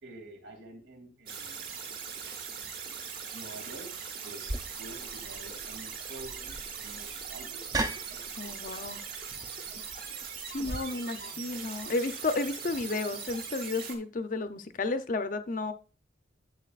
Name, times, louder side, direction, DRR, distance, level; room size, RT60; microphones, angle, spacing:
voice 1, 0.0-1.7 2.7-3.0 3.3-7.7 8.1-8.9 10.9-11.5, right 2 dB, 85° right, 2 dB, 2.5 m, -49 dB
sound 1, 1.3-13.9, right 6 dB, 50° right, 1.3 m, -41 dB
sound 2, 4.5-10.8, right 2 dB, 20° right, 0.5 m, -39 dB
voice 2, 8.4-9.0 10.5-15.7, left 3 dB, 45° left, 10 dB, 0.6 m, -32 dB
10.5 x 7.4 x 2.4 m, 0.37 s
head